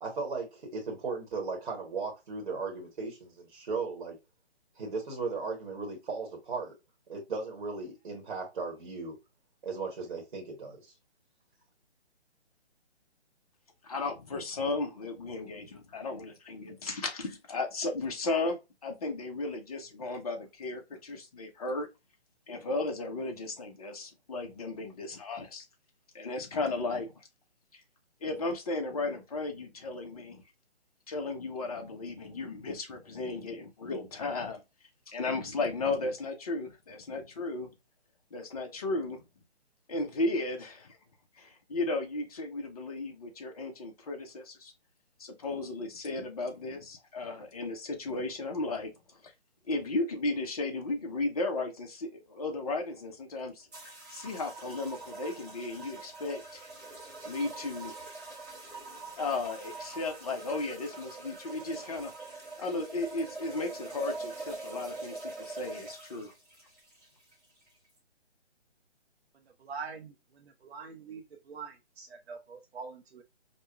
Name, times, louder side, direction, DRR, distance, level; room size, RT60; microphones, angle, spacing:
voice 1, 0.0-4.2 4.7-6.7 7.1-9.2 9.6-10.9, right 4 dB, 50° right, 1.1 m, -36 dB
voice 2, 13.8-21.9 22.5-25.6 26.1-27.1 28.2-30.4 31.1-34.6 35.1-37.7 38.3-39.2 39.9-41.0 41.4-44.7 45.2-48.9 49.7-53.7 54.1-56.6 57.2-57.9 59.2-62.1 62.6-66.3, left 3 dB, 35° left, 0.7 m, -35 dB
sound 1, 53.7-68.0, right 3 dB, 5° right, 0.8 m, -44 dB
voice 3, 69.6-73.2, right 5 dB, 65° right, 0.7 m, -44 dB
5.2 x 2.2 x 2.3 m
figure-of-eight pair, 155°, 34 cm